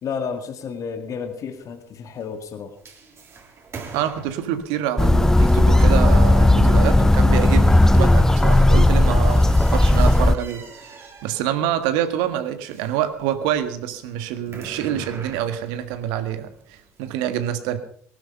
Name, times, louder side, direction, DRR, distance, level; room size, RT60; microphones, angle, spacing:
voice 1, 0.0-2.8, left 6 dB, 45° left, 6 dB, 2.1 m, -31 dB
sound 1, 1.6-17.0, right 4 dB, 35° right, 3.4 m, -44 dB
voice 2, 3.9-17.8, right 10 dB, 65° right, 10 dB, 1.6 m, -26 dB
sound 2, 5.0-10.4, left 1 dB, 5° left, 0.5 m, -15 dB
19.0 x 12.0 x 5.5 m, 0.62 s
hypercardioid pair, 65°, 8 cm